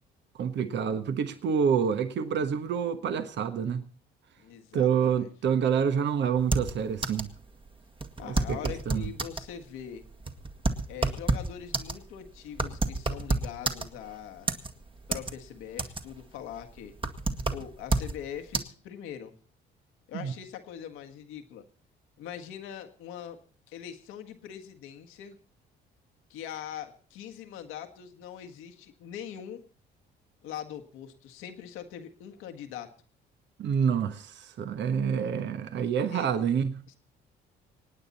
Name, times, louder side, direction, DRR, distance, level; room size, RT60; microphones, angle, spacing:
voice 1, 0.3-3.8 4.7-7.3 8.2-8.6 8.9-9.0 20.1-20.3 33.6-36.8, right 7 dB, 60° right, 1.3 m, -27 dB
voice 2, 4.4-5.3 8.2-10.0 10.9-14.5 15.1-16.9 17.5-19.3 20.1-21.7 22.2-23.4 23.7-25.4 26.3-29.6 30.4-32.9 36.1-36.3 36.9-37.0, left 9 dB, 85° left, 1.6 m, -42 dB
sound 1, 6.4-7.4 7.6-7.7 8.0-9.5 10.0-14.1 14.5-15.3 15.6-16.2 16.6-18.2 18.5-18.6, right 3 dB, 25° right, 1.6 m, -29 dB
26.0 x 9.2 x 4.1 m
supercardioid pair, 70°, 21 cm